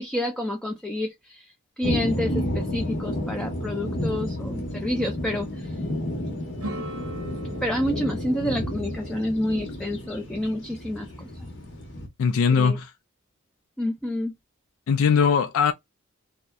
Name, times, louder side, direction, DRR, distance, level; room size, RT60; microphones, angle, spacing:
voice 1, 0.0-1.4 1.8-5.7 7.6-11.3 12.5-12.8 13.8-14.3, left 1 dB, 5° left, 0.4 m, -29 dB
sound 1, 1.8-12.1, left 1 dB, 60° left, 0.9 m, -31 dB
sound 2, 6.6-11.8, right 1 dB, 90° right, 0.8 m, -42 dB
voice 2, 12.2-12.9 14.9-15.7, left 6 dB, 75° left, 0.3 m, -20 dB
2.6 x 2.1 x 2.2 m
head